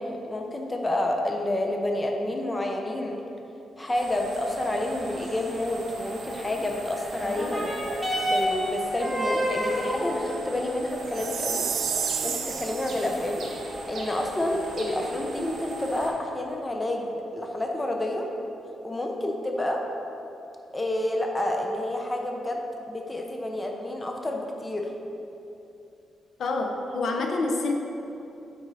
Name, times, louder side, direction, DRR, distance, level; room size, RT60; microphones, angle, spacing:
voice 1, 0.0-3.2 3.8-7.7 8.0-11.7 12.2-13.5 13.9-18.3 18.8-19.8 20.7-22.6 22.9-24.9, left 1 dB, 15° left, 1 dB, 0.7 m, -29 dB
sound 1, 3.9-16.1, right 2 dB, 60° right, 1.2 m, -39 dB
sound 2, 7.2-16.2 17.0-17.1, equal, ahead, 1.1 m, -32 dB
Chime, 11.1-13.1, right 7 dB, 80° right, 0.5 m, -30 dB
voice 2, 26.4-27.7, left 3 dB, 65° left, 3 dB, 0.7 m, -27 dB
7.9 x 5.3 x 4.0 m, 2.8 s
cardioid pair, 110°, 0 cm